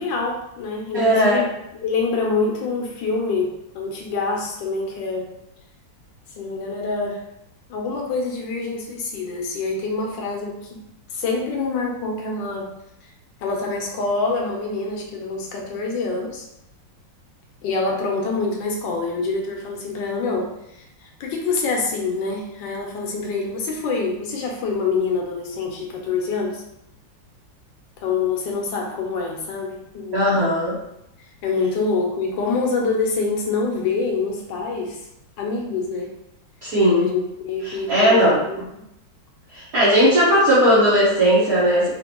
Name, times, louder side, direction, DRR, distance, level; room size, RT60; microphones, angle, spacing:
voice 1, 0.0-1.5 1.8-5.3 6.4-7.2 7.7-10.8 11.1-12.7 13.0-13.1 13.4-16.5 17.6-26.6 28.0-30.2 31.2-35.1 35.4-36.1 37.0-38.8, left 4 dB, 80° left, 0 dB, 1.4 m, -26 dB
voice 2, 0.9-1.4 30.1-30.8 36.6-37.1 37.7-38.4 39.5-41.9, equal, 55° right, -9 dB, 1.4 m, -17 dB
5.0 x 2.6 x 2.9 m, 0.82 s
omnidirectional pair, 2.0 m